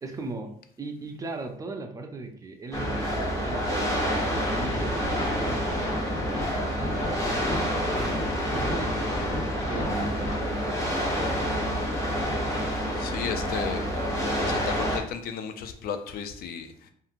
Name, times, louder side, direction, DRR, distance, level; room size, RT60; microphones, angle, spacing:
voice 1, 0.0-7.7 8.5-12.0, right 2 dB, 20° right, 5 dB, 0.4 m, -38 dB
sound 1, 2.7-15.0, equal, 20° left, 0.8 m, -28 dB
sound 2, 4.6-10.4, left 1 dB, 45° left, 1.2 m, -35 dB
voice 2, 12.9-13.8 14.4-16.9, left 7 dB, 65° left, 7 dB, 0.4 m, -34 dB
2.8 x 2.4 x 2.4 m, 0.63 s
cardioid pair, 110°, 17 cm